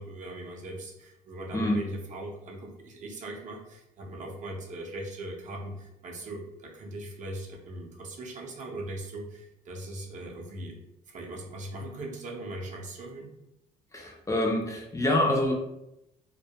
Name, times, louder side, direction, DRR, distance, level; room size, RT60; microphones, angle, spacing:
voice 1, 0.0-10.8 11.1-13.3, right 1 dB, 45° right, 0 dB, 0.6 m, -39 dB
voice 2, 13.9-15.5, left 1 dB, 20° left, -1 dB, 0.4 m, -26 dB
2.2 x 2.1 x 2.7 m, 0.87 s
cardioid pair, 110°, 17 cm